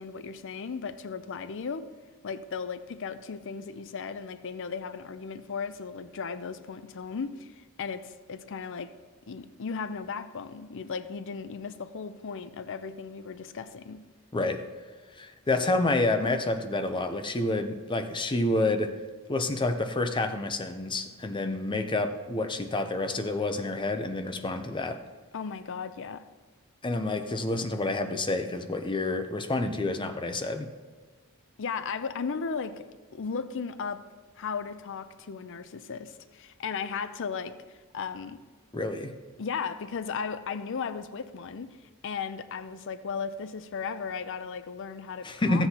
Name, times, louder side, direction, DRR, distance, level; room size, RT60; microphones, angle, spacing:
voice 1, 0.0-1.9 2.2-8.9 9.3-14.0 25.3-26.2 31.6-32.9 33.1-34.0 34.4-38.4 39.4-41.7 42.0-45.7, left 5 dB, 65° left, 12 dB, 0.5 m, -36 dB
voice 2, 15.2-18.9 19.3-25.0 26.8-30.7 38.7-39.1 45.2-45.7, left 2 dB, 25° left, 8 dB, 0.6 m, -28 dB
15.0 x 7.9 x 2.8 m, 1.4 s
head